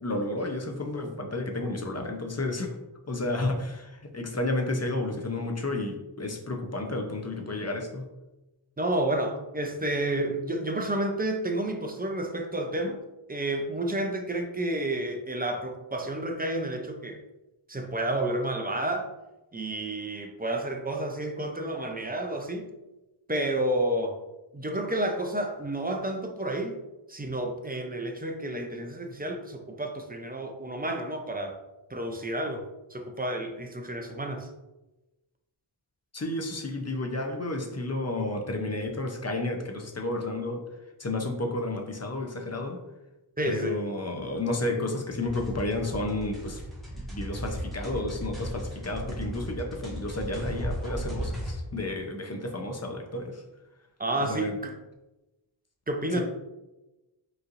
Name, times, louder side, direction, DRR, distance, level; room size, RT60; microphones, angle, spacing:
voice 1, 0.0-2.8 3.1-8.0 36.1-40.6 41.0-42.8 43.4-46.6 47.0-53.4 54.3-54.5, left 2 dB, 30° left, 2 dB, 0.7 m, -31 dB
voice 2, 8.8-13.0 13.3-17.2 17.7-19.1 19.5-22.7 23.3-24.2 24.5-26.8 27.1-31.6 31.9-32.6 32.9-34.5 43.4-43.8 54.0-54.7 55.9-56.2, right 1 dB, 20° right, 3 dB, 0.5 m, -30 dB
sound 1, 45.2-51.5, equal, ahead, 1.4 m, -36 dB
5.1 x 3.2 x 2.6 m, 1.0 s
wide cardioid pair, 55°, 50 cm